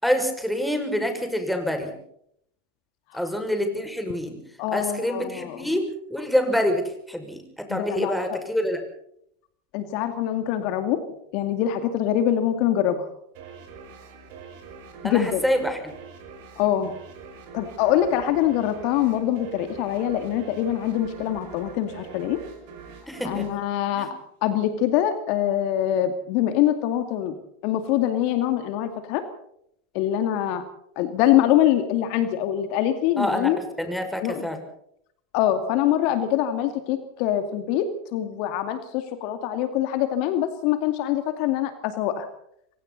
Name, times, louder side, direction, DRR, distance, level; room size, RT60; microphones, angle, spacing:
voice 1, 0.0-1.9 3.1-4.4 4.7-8.8 15.0-15.9 23.1-23.5 24.0-24.1 33.2-34.6, equal, ahead, 5 dB, 6.0 m, -26 dB
voice 2, 4.6-5.7 7.7-8.2 9.7-11.0 11.3-13.1 15.0-15.4 16.6-16.9 17.5-22.4 23.2-24.1 24.4-27.4 27.6-29.2 29.9-30.6 31.0-33.6 34.2-34.5 35.3-37.8 38.1-42.3, left 11 dB, 50° left, 8 dB, 2.3 m, -24 dB
sound 1, 13.3-24.6, right 5 dB, 55° right, 6.1 m, -44 dB
27.5 x 24.0 x 4.1 m, 0.71 s
figure-of-eight pair, 85°, 0 cm